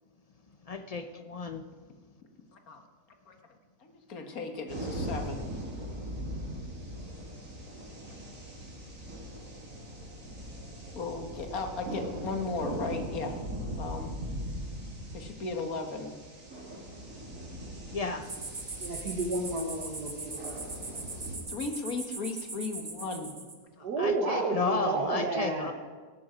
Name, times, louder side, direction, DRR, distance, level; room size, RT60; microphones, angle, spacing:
voice 1, 0.7-1.6 17.9-18.3 24.0-25.7, left 4 dB, 40° left, 8 dB, 0.5 m, -32 dB
voice 2, 3.8-5.5 8.1-8.2 11.0-13.4 13.8-14.1 15.1-16.2 21.5-23.3 23.8-23.9, left 3 dB, 65° left, 5 dB, 1.9 m, -36 dB
sound 1, 4.7-21.4, equal, 55° right, 3.4 m, -40 dB
sound 2, 18.2-23.5, right 3 dB, 25° right, 1.4 m, -40 dB
voice 3, 18.8-20.7 23.8-25.7, right 3 dB, 85° right, 1 dB, 2.0 m, -31 dB
17.0 x 12.0 x 5.1 m, 1.4 s
omnidirectional pair, 1.7 m